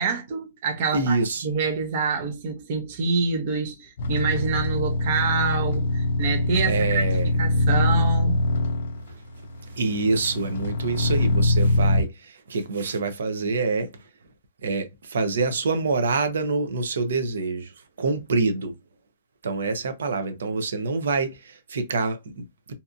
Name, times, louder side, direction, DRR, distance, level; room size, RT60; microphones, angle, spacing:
voice 1, 0.0-1.2 1.4-8.4, right 4 dB, 35° right, 0.6 m, -26 dB
voice 2, 0.9-1.5 6.7-7.3 9.1-9.2 9.7-14.0 14.6-18.7 19.4-22.7, right 3 dB, 90° right, 0.7 m, -26 dB
sound 1, 4.0-12.0, left 1 dB, 55° left, 0.4 m, -23 dB
2.7 x 2.6 x 2.3 m
hypercardioid pair, 180°, 0 cm